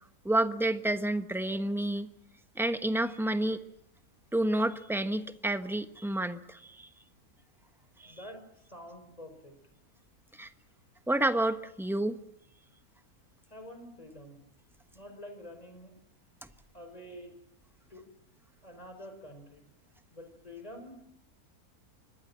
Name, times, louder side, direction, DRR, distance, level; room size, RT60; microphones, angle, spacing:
voice 1, 0.2-2.1 2.6-3.6 4.3-6.9 8.0-8.1 10.4-10.5 11.1-12.2, right 1 dB, ahead, 9 dB, 1.0 m, -29 dB
voice 2, 8.1-9.5 13.5-14.4 14.9-15.9 16.7-17.3 17.9-18.0 18.6-19.7 20.1-21.0, left 1 dB, 25° left, 6 dB, 5.8 m, -47 dB
25.5 x 20.0 x 7.5 m, 0.77 s
omnidirectional pair, 1.6 m